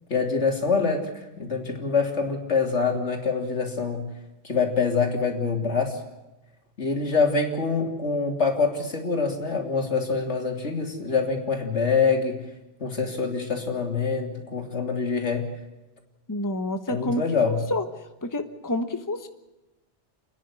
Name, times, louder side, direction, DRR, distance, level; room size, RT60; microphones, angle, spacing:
voice 1, 0.1-1.1 1.4-4.1 4.4-6.0 6.8-12.4 12.8-15.5 16.9-17.7, left 5 dB, 80° left, 3 dB, 3.3 m, -25 dB
voice 2, 16.3-17.2 17.5-17.8 18.2-19.3, left 1 dB, 15° left, 8 dB, 1.2 m, -28 dB
29.5 x 10.5 x 9.8 m, 1.0 s
omnidirectional pair, 1.2 m